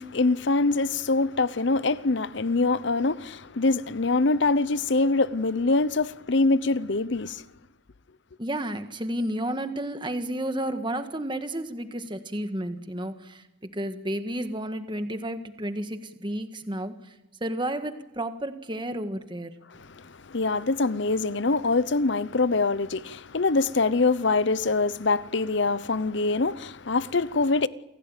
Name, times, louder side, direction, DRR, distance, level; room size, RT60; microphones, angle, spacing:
voice 1, 0.0-7.4 19.7-27.7, left 3 dB, 60° left, 0.8 m, -24 dB
voice 2, 8.4-13.4 13.7-17.1 17.4-19.5, right 1 dB, 25° right, 1.7 m, -31 dB
28.5 x 16.5 x 9.1 m
head